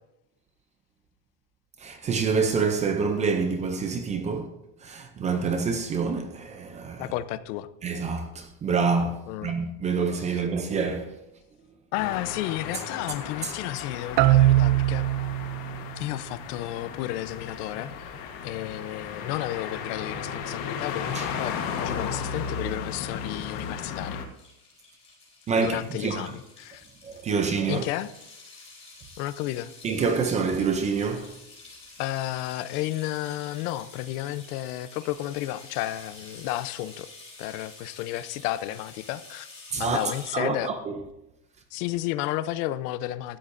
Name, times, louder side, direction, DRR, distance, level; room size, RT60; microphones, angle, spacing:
voice 1, 1.8-4.5 4.8-7.1 7.8-11.1 13.4-13.5 21.1-21.3 25.5-26.3 27.0-27.8 29.8-31.3 39.7-40.0 40.3-40.9, right 5 dB, 15° right, 0.4 m, -27 dB
voice 2, 7.0-7.7 9.3-9.6 10.3-10.4 11.9-15.1 16.0-17.9 18.4-24.2 25.5-26.8 27.7-28.1 29.2-29.7 32.0-37.1 37.4-39.5 39.8-40.7 41.7-43.4, left 15 dB, 80° left, 0.8 m, -32 dB
sound 1, 12.0-24.3, left 6 dB, 45° left, 1.3 m, -35 dB
sound 2, 14.2-15.9, right 16 dB, 85° right, 0.6 m, -20 dB
sound 3, 22.7-40.3, left 3 dB, 15° left, 3.6 m, -49 dB
16.5 x 13.0 x 2.6 m
cardioid pair, 175°, 45 cm